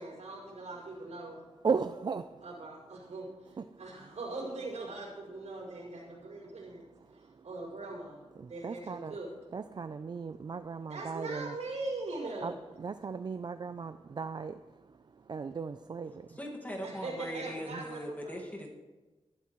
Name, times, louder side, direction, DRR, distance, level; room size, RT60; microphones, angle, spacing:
voice 1, 0.0-1.4 2.4-6.8 7.1-8.2 8.5-9.3 10.9-12.5 16.8-18.3, right 2 dB, 80° right, -4 dB, 5.3 m, -41 dB
voice 2, 1.6-2.2 8.6-9.1 9.5-11.5 12.4-12.5 12.8-14.6 15.3-16.1 17.7-17.8, right 5 dB, 40° right, 10 dB, 0.4 m, -35 dB
voice 3, 16.4-18.7, equal, 15° left, -1 dB, 1.9 m, -40 dB
21.0 x 12.0 x 3.1 m, 1.2 s
wide cardioid pair, 150°, 11 cm